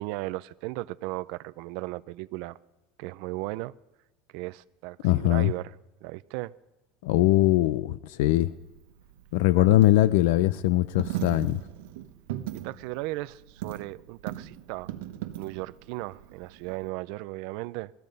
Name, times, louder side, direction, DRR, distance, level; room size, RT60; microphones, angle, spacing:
voice 1, 0.0-2.6 3.0-3.7 4.3-5.7 6.0-6.5 9.6-9.7 12.5-14.9 15.4-17.9, right 20 dB, 55° right, 0.4 m, -36 dB
voice 2, 5.0-5.5 7.0-8.5 9.3-11.6, left 16 dB, 70° left, 0.5 m, -21 dB
Coin (dropping), 8.3-16.9, right 13 dB, 85° right, 1.1 m, -39 dB
19.0 x 13.5 x 5.3 m
cardioid pair, 175°, 0 cm